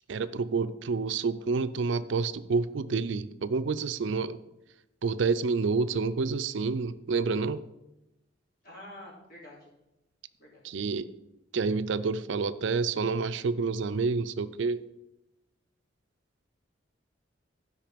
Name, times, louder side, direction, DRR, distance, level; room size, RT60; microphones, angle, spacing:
voice 1, 0.1-4.4 5.0-7.6 10.6-11.1 11.5-14.9, right 4 dB, 70° right, 13 dB, 0.4 m, -28 dB
voice 2, 8.6-9.7 10.4-10.9, left 1 dB, 50° left, -4 dB, 3.5 m, -48 dB
12.5 x 5.3 x 5.1 m, 0.92 s
head